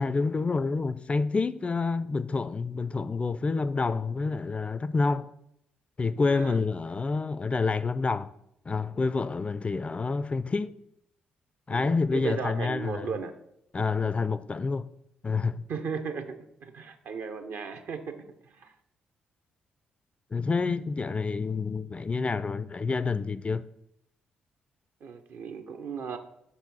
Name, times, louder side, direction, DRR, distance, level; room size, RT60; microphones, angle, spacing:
voice 1, 0.0-5.3 6.0-8.3 8.7-10.7 11.7-13.1 13.7-14.9 15.2-15.6 20.3-23.6, left 4 dB, 30° left, 0.3 m, -28 dB
voice 2, 6.3-6.6 11.7-13.3 15.7-18.1 18.4-18.7 25.0-26.2, right 5 dB, 60° right, 0.7 m, -36 dB
5.8 x 4.1 x 5.3 m
figure-of-eight pair, 40°, 4 cm